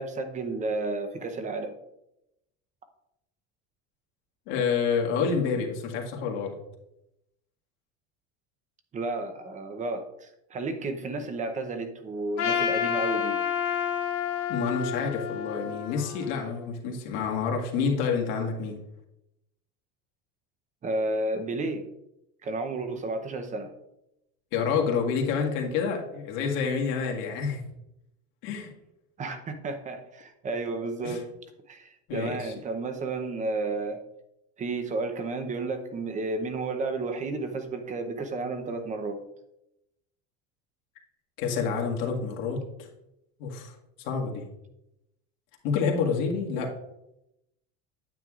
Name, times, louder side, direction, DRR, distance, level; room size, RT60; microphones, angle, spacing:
voice 1, 0.0-1.7 8.9-13.4 20.8-21.9 22.4-23.7 29.2-31.2 31.7-34.0 34.6-39.2, right 3 dB, 20° right, 7 dB, 0.7 m, -32 dB
voice 2, 4.5-6.6 14.5-18.8 24.5-27.7 28.4-28.7 31.0-31.2 32.1-32.5 41.4-42.9 43.4-43.7 44.0-44.4 45.6-46.7, left 5 dB, 70° left, 0 dB, 1.9 m, -28 dB
Trumpet, 12.4-16.7, left 8 dB, 45° left, 1.1 m, -29 dB
9.4 x 9.2 x 2.4 m, 0.86 s
cardioid pair, 170°, 34 cm